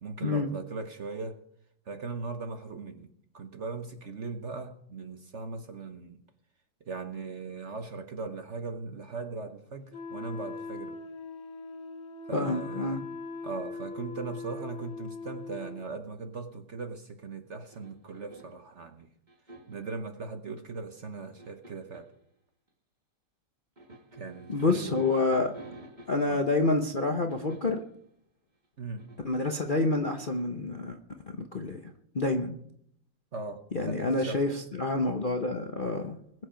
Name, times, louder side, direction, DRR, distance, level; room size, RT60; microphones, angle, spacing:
voice 1, 0.0-1.4 1.9-3.1 3.3-6.2 6.9-11.0 12.3-13.0 13.4-19.1 19.7-22.1 24.1-25.0 26.3-26.4 28.8-29.1 33.3-34.4, right 4 dB, 50° right, 7 dB, 0.9 m, -39 dB
Wind instrument woodwind instrument, 9.9-15.8, left 4 dB, 70° left, 2.8 m, -41 dB
voice 2, 12.3-13.0 24.5-25.5 26.1-27.8 29.2-31.0 31.3-31.8 32.1-32.6 33.7-34.5 34.8-36.2, left 2 dB, 55° left, 3 dB, 0.5 m, -28 dB
sound 1, 17.6-18.7 19.3-19.9 20.9-22.2 23.8-26.5 27.3-27.9 29.0-30.4, right 2 dB, 20° right, 1.7 m, -50 dB
21.5 x 7.9 x 5.1 m, 0.70 s
omnidirectional pair, 2.3 m